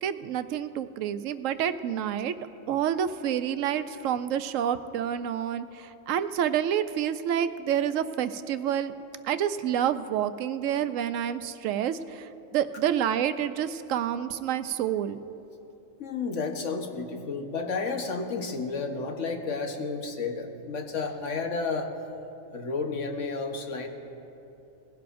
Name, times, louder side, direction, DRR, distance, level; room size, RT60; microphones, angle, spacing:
voice 1, 0.0-2.3 2.7-8.9 9.2-15.2, right 9 dB, 80° right, 12 dB, 0.9 m, -28 dB
voice 2, 16.0-21.9 22.5-23.9, left 4 dB, 70° left, 4 dB, 1.4 m, -31 dB
20.5 x 16.0 x 2.6 m, 3.0 s
omnidirectional pair, 1.3 m